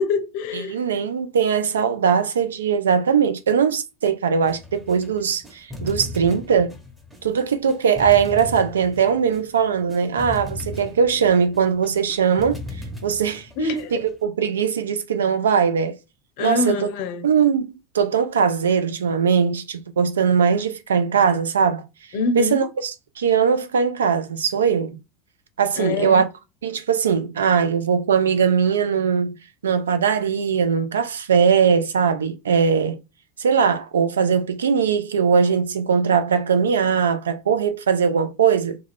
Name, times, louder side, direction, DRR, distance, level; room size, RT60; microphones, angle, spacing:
voice 1, 0.0-0.8 13.6-14.0 16.4-17.3 22.1-22.7 25.8-26.2, left 3 dB, 60° left, 0.5 m, -25 dB
voice 2, 0.5-6.7 7.2-12.6 13.0-13.5 13.9-16.0 16.4-16.9 17.2-21.8 22.3-25.0 25.6-26.3 26.6-29.4 29.6-33.0 33.4-38.8, right 6 dB, 85° right, 0.4 m, -20 dB
sound 1, 4.5-14.2, left 2 dB, 5° right, 1.0 m, -37 dB
2.3 x 2.3 x 3.3 m
hypercardioid pair, 90°, 0 cm